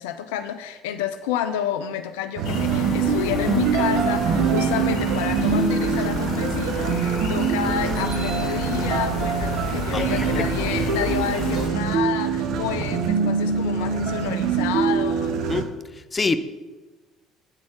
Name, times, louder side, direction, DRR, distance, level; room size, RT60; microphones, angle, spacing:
voice 1, 0.0-15.5, left 10 dB, 70° left, 9 dB, 0.4 m, -29 dB
sound 1, 2.4-11.7, left 4 dB, 55° left, 1.4 m, -32 dB
sound 2, 2.4-15.6, right 6 dB, 60° right, 0.7 m, -24 dB
voice 2, 9.9-10.5 15.5-15.7 16.1-16.4, left 4 dB, 25° left, 11 dB, 0.5 m, -25 dB
8.8 x 4.1 x 5.9 m, 1.2 s
figure-of-eight pair, 55°, 0 cm